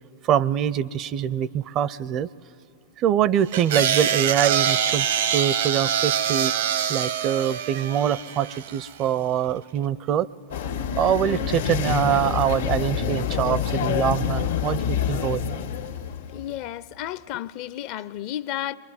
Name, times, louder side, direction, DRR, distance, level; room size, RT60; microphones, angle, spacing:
voice 1, 0.2-2.3 3.0-6.5 6.9-10.3 11.0-15.6, right 10 dB, 40° right, 0.5 m, -24 dB
sound 1, 3.5-8.9, right 9 dB, 80° right, 0.9 m, -24 dB
sound 2, 10.5-16.5, left 8 dB, 85° left, 1.4 m, -27 dB
voice 2, 16.3-18.8, left 12 dB, 55° left, 0.5 m, -32 dB
22.0 x 22.0 x 9.5 m
hypercardioid pair, 110°, 0 cm